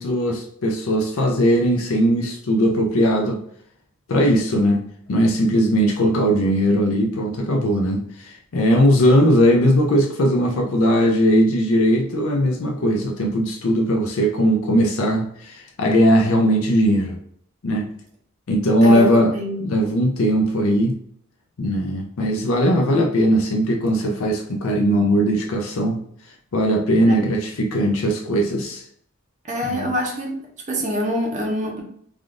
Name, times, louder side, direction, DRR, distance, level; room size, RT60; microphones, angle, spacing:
voice 1, 0.0-3.4 4.1-17.2 17.6-17.9 18.5-19.3 19.6-21.0 21.6-26.0 26.5-28.8 29.6-29.9, equal, 75° left, 1 dB, 0.5 m, -19 dB
voice 2, 18.8-19.8 27.1-27.2 29.4-30.4 30.7-31.8, equal, 35° right, 1 dB, 0.6 m, -25 dB
3.4 x 2.4 x 2.4 m, 0.65 s
head